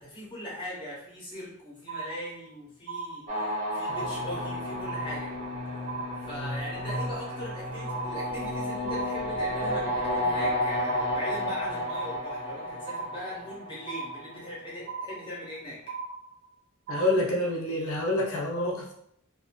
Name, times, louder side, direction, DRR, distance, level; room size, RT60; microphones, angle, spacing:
voice 1, 0.0-3.5 3.7-5.3 6.2-15.8, left 1 dB, 20° left, -6 dB, 0.8 m, -40 dB
sound 1, 1.9-2.5 2.9-3.5 3.9-4.5 4.9-5.5 5.9-6.5 6.9-7.5 7.9-8.5 8.9-9.5 9.9-10.5 10.9-11.5 11.9-12.5 12.9-13.5 13.9-14.5 14.9-15.5 15.9-16.5 16.9-17.2, right 4 dB, 80° right, 0.6 m, -38 dB
sound 2, 3.3-14.4, left 1 dB, 35° right, 0.6 m, -32 dB
voice 2, 16.9-18.9, left 1 dB, 65° left, -1 dB, 0.5 m, -27 dB
2.5 x 2.2 x 2.2 m, 0.71 s
head